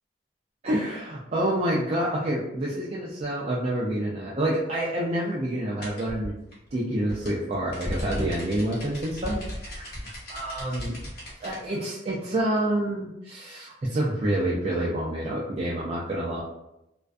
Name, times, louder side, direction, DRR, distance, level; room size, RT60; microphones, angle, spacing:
voice 1, 0.6-6.3 6.7-9.9 10.3-11.0 11.4-16.4, right 1 dB, 35° right, -6 dB, 0.4 m, -28 dB
sound 1, 5.8-11.6, equal, 55° left, 0.8 m, -36 dB
2.5 x 2.2 x 2.3 m, 0.87 s
head